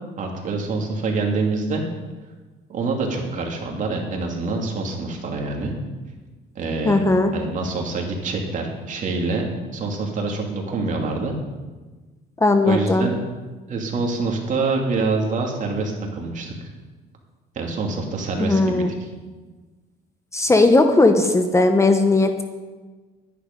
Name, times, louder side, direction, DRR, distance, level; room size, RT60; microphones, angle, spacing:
voice 1, 0.2-1.8 2.7-5.7 6.6-7.1 7.3-9.4 9.7-11.4 12.6-13.2 13.7-16.5 17.6-19.1, right 3 dB, 50° right, 1 dB, 2.6 m, -26 dB
voice 2, 6.8-7.3 12.4-13.1 18.4-18.9 20.3-22.4, left 2 dB, 15° left, 6 dB, 0.9 m, -17 dB
11.5 x 10.0 x 5.3 m, 1.3 s
cardioid pair, 110°, 17 cm